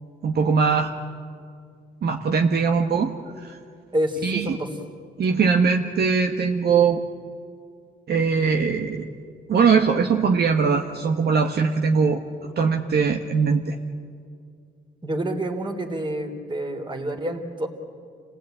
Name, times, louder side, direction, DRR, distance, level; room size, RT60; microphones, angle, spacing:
voice 1, 0.2-0.9 2.0-3.1 3.4-3.6 4.2-4.6 5.2-7.0 8.1-9.1 9.5-12.2 12.6-13.8, right 5 dB, 55° right, 4 dB, 1.5 m, -21 dB
voice 2, 3.9-4.7 15.0-17.7, right 1 dB, 25° right, 5 dB, 3.2 m, -28 dB
28.0 x 17.5 x 9.0 m, 2.2 s
cardioid pair, 90°, 20 cm